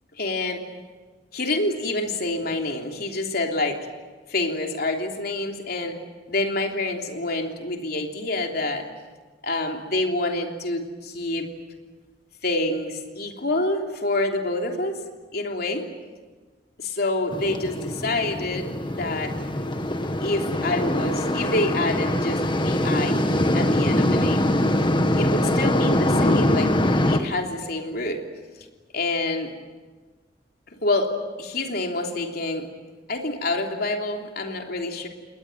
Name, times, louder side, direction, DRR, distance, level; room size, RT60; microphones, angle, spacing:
voice 1, 0.1-0.6 1.3-3.8 4.3-6.0 6.3-8.9 9.4-11.5 12.4-15.0 15.3-15.9 16.8-19.3 20.2-23.2 23.5-24.5 25.1-26.7 27.1-28.2 28.9-29.5 30.8-31.1 31.4-32.7 33.1-35.1, left 2 dB, 55° left, 2 dB, 3.3 m, -27 dB
sound 1, 17.3-27.2, left 1 dB, 25° left, 1.7 m, -23 dB
29.0 x 20.5 x 9.2 m, 1.4 s
head